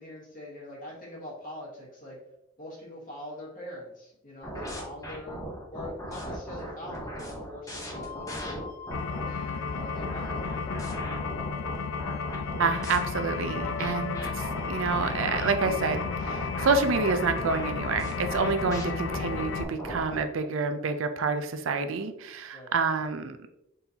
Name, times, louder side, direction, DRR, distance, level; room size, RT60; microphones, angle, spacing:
voice 1, 0.0-2.2 2.6-5.4 5.7-8.7 9.2-10.7 22.5-22.8, left 1 dB, 40° left, -5 dB, 1.5 m, -43 dB
sound 1, 4.4-9.2 9.7-13.0 13.6-20.3, equal, 15° left, 0.9 m, -38 dB
Wind instrument woodwind instrument, 7.9-16.8, left 7 dB, 55° right, 0.9 m, -45 dB
sound 2, 8.9-19.6, left 5 dB, 60° left, 0.3 m, -33 dB
voice 2, 12.6-23.4, right 4 dB, 70° right, 8 dB, 0.5 m, -28 dB
4.1 x 3.8 x 2.8 m, 0.83 s
head